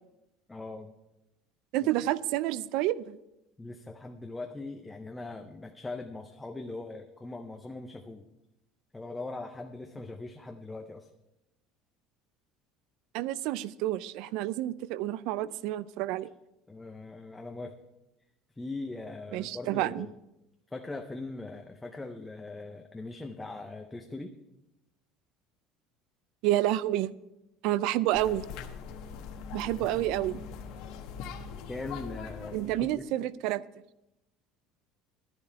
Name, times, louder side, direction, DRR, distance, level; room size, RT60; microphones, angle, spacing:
voice 1, 0.5-0.9 1.8-1.9 3.6-8.2 8.9-11.1 16.7-17.8 18.6-20.1 20.7-24.3 29.8-29.9 31.7-33.0, left 2 dB, 10° left, 4 dB, 0.5 m, -41 dB
voice 2, 1.7-3.2 13.1-16.3 19.3-20.1 26.4-27.1 27.6-28.5 29.5-30.4 32.5-33.6, right 14 dB, 60° right, 18 dB, 0.4 m, -29 dB
sound 1, 28.1-33.0, left 6 dB, 60° left, 1.2 m, -42 dB
11.5 x 10.5 x 4.5 m, 0.91 s
cardioid pair, 175°, 0 cm